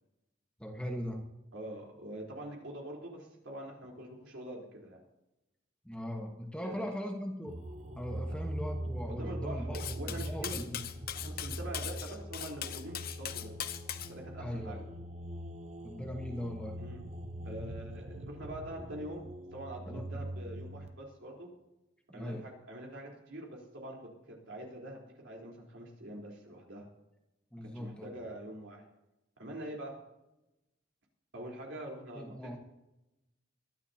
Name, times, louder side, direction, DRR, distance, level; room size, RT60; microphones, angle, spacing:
voice 1, 0.6-1.2 5.8-7.6 8.0-10.8 14.4-14.9 15.8-16.8 19.8-20.1 22.1-22.5 27.5-28.2 32.1-32.6, equal, 5° left, 1 dB, 1.3 m, -40 dB
voice 2, 1.5-5.0 6.6-6.8 8.1-8.4 9.1-10.7 11.1-13.5 14.1-14.9 16.8-17.0 17.4-21.5 22.1-26.9 27.6-28.8 29.4-30.0 31.3-32.5, right 1 dB, 70° right, -1 dB, 3.9 m, -44 dB
sound 1, 7.5-20.9, right 1 dB, 35° right, 0.8 m, -42 dB
Cutlery silverware, 9.7-14.1, left 11 dB, 50° left, 0.7 m, -40 dB
22.0 x 12.0 x 2.9 m, 0.95 s
head